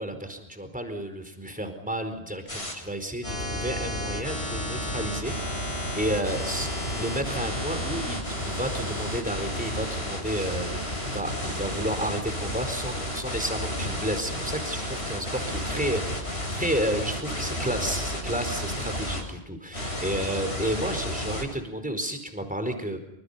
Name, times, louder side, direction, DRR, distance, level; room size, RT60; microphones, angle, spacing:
voice 1, 0.0-23.0, right 1 dB, 10° right, 8 dB, 4.6 m, -31 dB
sound 1, 2.5-2.7 3.2-19.2 19.7-21.4, equal, 85° left, 8.3 m, -32 dB
29.0 x 27.5 x 5.7 m, 0.78 s
omnidirectional pair, 1.1 m